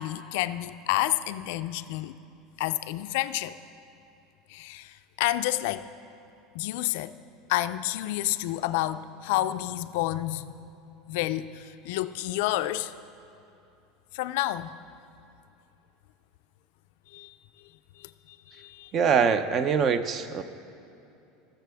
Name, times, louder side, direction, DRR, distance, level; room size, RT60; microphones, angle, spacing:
voice 1, 0.0-2.2 2.6-3.6 4.5-5.9 6.5-7.1 7.5-10.7 11.1-12.9 14.1-14.8 17.1-17.3 18.0-18.9, left 15 dB, 70° left, 12 dB, 0.3 m, -30 dB
voice 2, 18.9-20.4, right 6 dB, 35° right, 11 dB, 0.5 m, -23 dB
19.0 x 6.8 x 3.5 m, 2.7 s
supercardioid pair, 150°, 0 cm